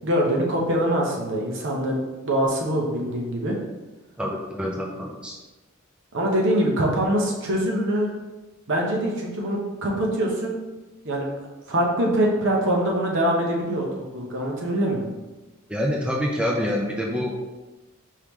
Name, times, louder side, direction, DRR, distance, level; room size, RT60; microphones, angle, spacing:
voice 1, 0.0-3.5 6.1-8.1 8.7-10.5 11.0-11.3 11.7-15.1, right 1 dB, 60° right, -1 dB, 1.0 m, -24 dB
voice 2, 4.2-5.4 15.7-17.3, equal, 5° right, -2 dB, 0.4 m, -26 dB
4.6 x 3.0 x 3.6 m, 1.1 s
head